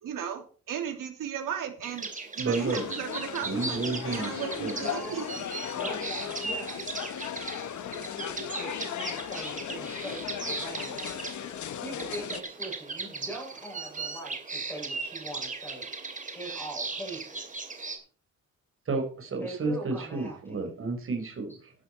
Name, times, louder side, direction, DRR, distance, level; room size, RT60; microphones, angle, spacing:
voice 1, 0.0-2.1 2.4-5.3, right 8 dB, 85° right, 4 dB, 3.0 m, -35 dB
sound 1, 1.8-18.0, right 4 dB, 25° right, 2.5 m, -38 dB
voice 2, 2.4-2.8 3.4-4.7 18.9-21.7, right 3 dB, 40° right, 4 dB, 4.7 m, -31 dB
sound 2, 2.5-12.4, left 10 dB, 65° left, 1.0 m, -37 dB
voice 3, 4.5-5.3 5.7-7.4 7.9-11.1 11.5-17.4 19.4-20.7, right 1 dB, 5° left, -1 dB, 6.5 m, -42 dB
12.5 x 11.0 x 4.5 m, 0.40 s
wide cardioid pair, 155°, 32 cm